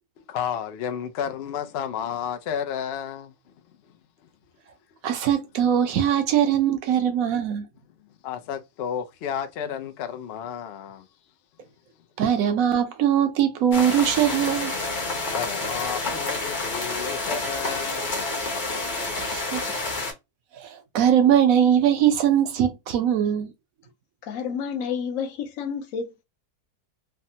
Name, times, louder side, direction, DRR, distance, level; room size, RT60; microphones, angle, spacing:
voice 1, 0.3-3.3 8.2-11.1 15.3-18.2, left 8 dB, 80° left, 0.5 m, -32 dB
voice 2, 5.0-7.7 12.2-14.7 19.2-19.8 20.5-23.5, right 9 dB, 70° right, 1.0 m, -21 dB
sound 1, 13.7-20.1, left 2 dB, 40° left, 0.7 m, -29 dB
voice 3, 24.2-26.2, left 6 dB, 65° left, 0.9 m, -30 dB
3.3 x 2.0 x 2.7 m
omnidirectional pair, 1.6 m